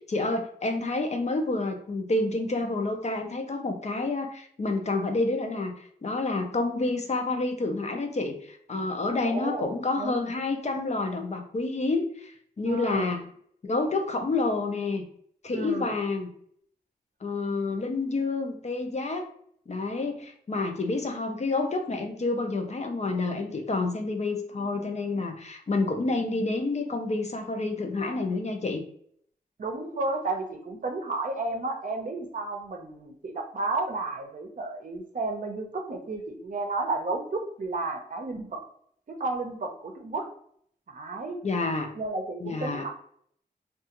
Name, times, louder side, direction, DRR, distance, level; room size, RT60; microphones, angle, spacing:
voice 1, 0.1-13.2 13.6-15.1 15.4-16.3 17.2-19.3 19.7-28.8 41.4-41.9 42.4-42.9, left 3 dB, 45° left, 4 dB, 0.5 m, -29 dB
voice 2, 9.2-9.7 10.0-10.3 12.6-13.1 15.5-15.9 29.6-38.6 39.1-40.3 40.9-41.4 42.0-42.9, right 3 dB, 55° right, 3 dB, 0.6 m, -32 dB
2.4 x 2.3 x 2.8 m, 0.64 s
cardioid pair, 60°, 16 cm